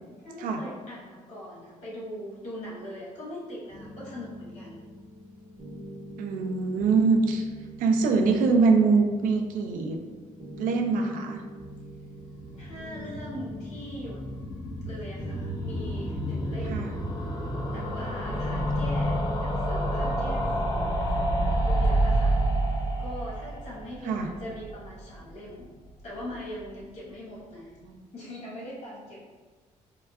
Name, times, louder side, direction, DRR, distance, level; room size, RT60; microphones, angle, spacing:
voice 1, 0.2-4.8 12.5-14.2 14.8-16.9 17.7-22.4 22.7-25.7 26.0-27.7 28.1-29.4, equal, 60° left, -6 dB, 1.2 m, -41 dB
sound 1, 3.7-21.0, equal, 40° right, 0.6 m, -44 dB
voice 2, 6.2-7.5 7.8-10.0 10.6-11.4 16.6-16.9 18.3-18.7 24.0-24.3 27.8-28.0, right 4 dB, 90° right, 4 dB, 0.4 m, -24 dB
sound 2, 12.2-25.3 25.6-25.7 25.9-26.0 26.2-26.3, right 1 dB, 25° left, 0.5 m, -29 dB
3.7 x 2.2 x 2.3 m, 1.3 s
cardioid pair, 115°, 14 cm